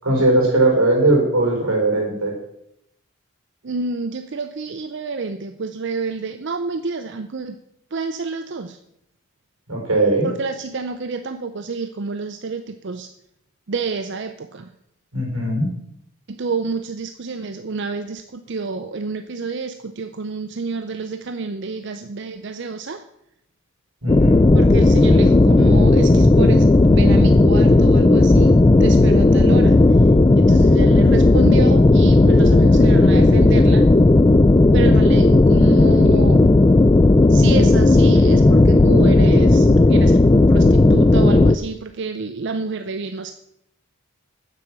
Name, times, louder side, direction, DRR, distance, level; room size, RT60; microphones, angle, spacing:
voice 1, 0.0-2.3 9.7-10.3 15.1-15.7 24.0-24.6, right 2 dB, 90° right, 0 dB, 4.3 m, -19 dB
voice 2, 3.6-7.6 7.9-8.8 10.2-13.1 13.7-14.7 16.3-23.0 24.5-30.1 30.4-33.8 34.7-36.5 37.3-43.3, right 4 dB, 55° right, 9 dB, 0.5 m, -28 dB
sound 1, 24.1-41.6, left 2 dB, 20° left, 0.3 m, -13 dB
9.6 x 7.6 x 7.4 m, 0.80 s
head